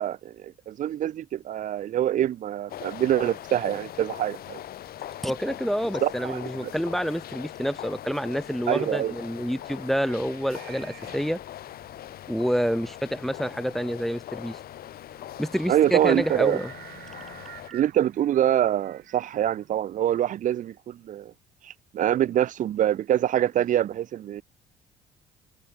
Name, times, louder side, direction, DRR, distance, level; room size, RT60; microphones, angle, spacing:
voice 1, 0.0-4.6 6.0-6.7 8.7-9.1 15.7-16.6 17.7-21.3 21.9-24.4, right 11 dB, 50° right, 0.6 m, -25 dB
sound 1, 2.7-17.7, left 12 dB, 65° left, 2.6 m, -41 dB
voice 2, 5.2-11.4 12.3-14.6 15.4-16.7, equal, ahead, 0.7 m, -28 dB
sound 2, 9.0-20.0, right 14 dB, 70° right, 3.5 m, -49 dB
cardioid pair, 110°, 17 cm